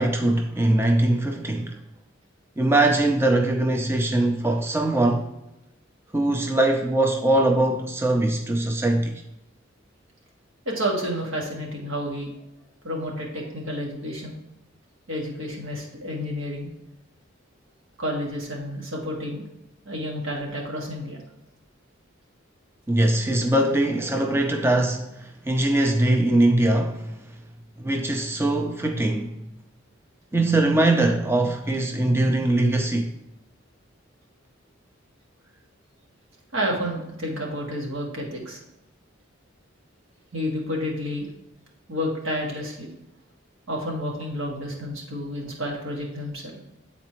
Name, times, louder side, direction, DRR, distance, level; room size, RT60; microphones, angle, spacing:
voice 1, 0.0-1.7 2.6-5.3 6.1-9.2 22.9-27.1 27.8-29.3 30.3-33.1, right 1 dB, 10° right, 0.5 m, -22 dB
voice 2, 10.6-12.3 12.8-14.3 15.1-16.7 18.0-19.4 19.8-21.2 36.5-38.6 40.3-41.3 41.9-42.9 43.7-46.5, equal, 80° right, 1.7 m, -30 dB
8.4 x 4.1 x 3.0 m
head